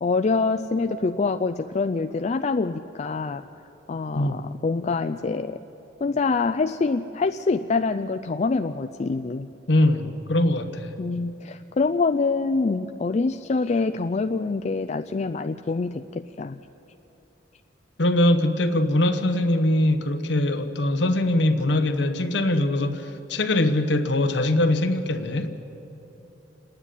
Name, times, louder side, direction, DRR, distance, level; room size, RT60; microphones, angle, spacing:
voice 1, 0.0-3.4 3.9-5.6 6.0-9.5 11.0-16.6, left 4 dB, 35° left, 7 dB, 0.4 m, -25 dB
voice 2, 4.1-4.5 9.7-11.0 18.0-25.6, left 1 dB, 65° left, 8 dB, 1.1 m, -22 dB
26.5 x 9.8 x 10.0 m, 3.0 s
head